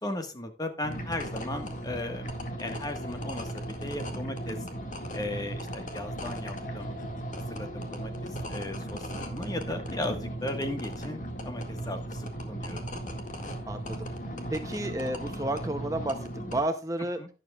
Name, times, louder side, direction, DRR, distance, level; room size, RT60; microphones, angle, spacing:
voice 1, 0.0-4.7 5.1-7.0 7.5-12.8 17.2-17.3, left 1 dB, 20° left, 5 dB, 1.4 m, -36 dB
sound 1, 0.8-16.6, right 1 dB, 45° left, 2.0 m, -37 dB
voice 2, 13.7-14.1 14.5-17.2, right 1 dB, 20° right, 7 dB, 0.7 m, -31 dB
12.0 x 10.5 x 2.4 m, 0.33 s
head